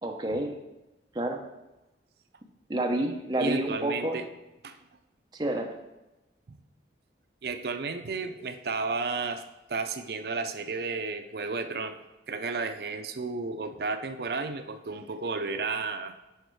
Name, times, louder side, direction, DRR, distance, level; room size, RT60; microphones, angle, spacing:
voice 1, 0.0-0.6 1.1-1.4 2.7-4.2 5.3-5.7, right 1 dB, 20° right, 2 dB, 0.7 m, -29 dB
voice 2, 3.4-4.2 4.6-4.8 6.5-6.6 7.4-9.4 9.7-12.0 12.3-16.1, right 4 dB, 60° right, 8 dB, 0.5 m, -32 dB
6.5 x 5.6 x 4.7 m, 1.0 s
head